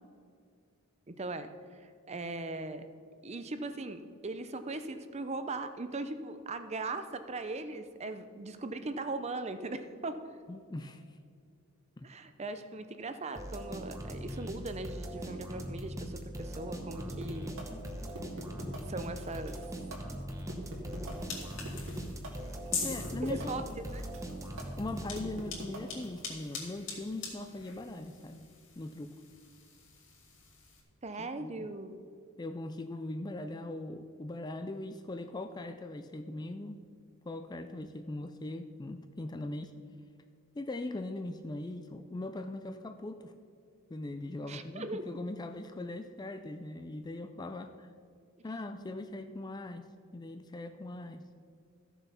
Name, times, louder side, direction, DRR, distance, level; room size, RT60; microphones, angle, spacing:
voice 1, 1.1-2.9 3.2-10.2 12.0-17.6 18.9-19.6 23.2-23.6 23.9-24.0 31.0-32.0 44.5-45.0, right 2 dB, 30° right, 10 dB, 0.6 m, -39 dB
voice 2, 10.5-11.0 12.0-12.1 22.8-23.6 24.8-28.4 28.8-29.1 31.2-31.7 32.4-36.9 37.2-39.7 40.5-43.3 43.9-47.9 48.4-51.2, left 2 dB, 20° left, 8 dB, 0.4 m, -40 dB
sound 1, 13.3-25.6, right 1 dB, 15° right, 0.9 m, -41 dB
sound 2, 17.0-26.2, right 1 dB, 65° right, 2.2 m, -44 dB
sound 3, 21.1-30.8, left 5 dB, 60° left, 2.5 m, -44 dB
14.0 x 7.1 x 5.6 m, 2.3 s
head